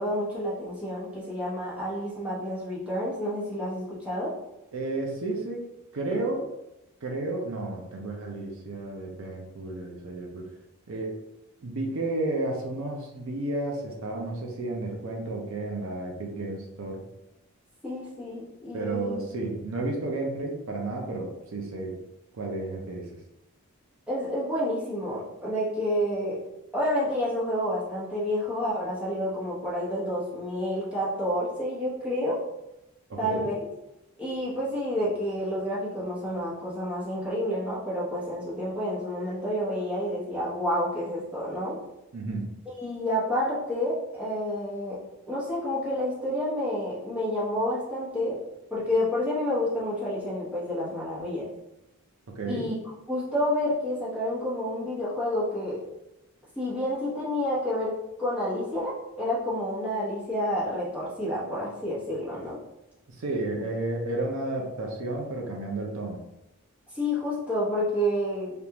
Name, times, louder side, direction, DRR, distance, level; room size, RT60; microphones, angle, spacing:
voice 1, 0.0-4.3 17.8-19.2 24.1-26.4 26.7-32.4 33.2-33.5 34.2-41.7 42.7-45.0 45.3-48.4 48.7-51.5 52.5-52.7 53.1-55.8 56.6-62.6 66.9-68.5, left 1 dB, 5° right, -9 dB, 1.0 m, -29 dB
voice 2, 4.7-5.6 5.9-6.5 7.0-10.4 10.9-11.2 11.6-17.0 18.7-21.9 22.3-23.2 33.1-33.5 42.1-42.5 52.3-52.6 63.1-66.2, right 2 dB, 70° right, 0 dB, 0.6 m, -32 dB
3.4 x 2.5 x 2.9 m, 0.92 s
head